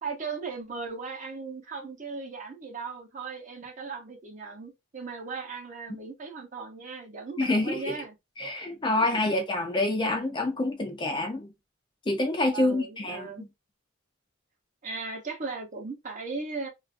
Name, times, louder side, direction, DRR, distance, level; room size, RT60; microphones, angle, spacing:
voice 1, 0.0-8.1 9.0-9.3 12.5-13.5 14.8-16.7, right 4 dB, 40° right, 0.7 m, -37 dB
voice 2, 7.4-8.0 8.4-11.5 12.1-13.3, left 2 dB, 20° left, 0.4 m, -27 dB
2.4 x 2.3 x 2.4 m
head